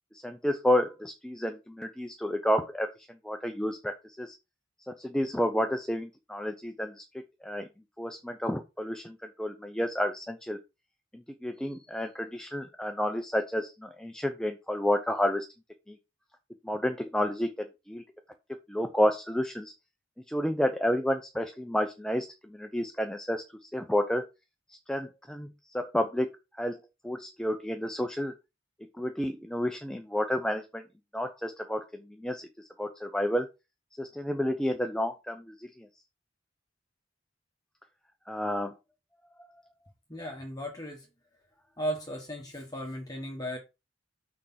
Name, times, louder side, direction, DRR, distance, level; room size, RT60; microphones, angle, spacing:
voice 1, 0.1-4.4 4.9-7.0 7.4-7.7 8.0-10.6 11.1-15.5 15.9-16.0 16.6-18.0 18.7-19.7 20.3-24.2 24.7-26.3 26.6-26.8 27.0-28.3 29.0-30.8 31.1-33.5 34.0-35.9 38.3-38.7 39.4-39.5, equal, 5° left, 0.6 m, -30 dB
voice 2, 40.1-41.1 41.8-43.6, equal, 20° left, 1.3 m, -36 dB
6.4 x 4.8 x 5.6 m
head